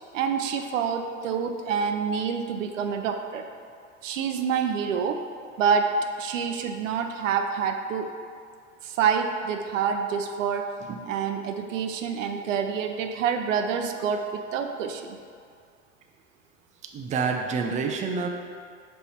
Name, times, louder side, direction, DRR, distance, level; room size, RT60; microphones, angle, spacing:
voice 1, 0.1-3.5 4.0-5.2 5.6-8.1 8.8-10.7 11.0-15.2, right 6 dB, 80° right, 6 dB, 0.6 m, -27 dB
voice 2, 16.8-18.3, right 5 dB, 20° right, 3 dB, 0.5 m, -28 dB
5.3 x 4.3 x 4.3 m, 2.2 s
hypercardioid pair, 90°, 38 cm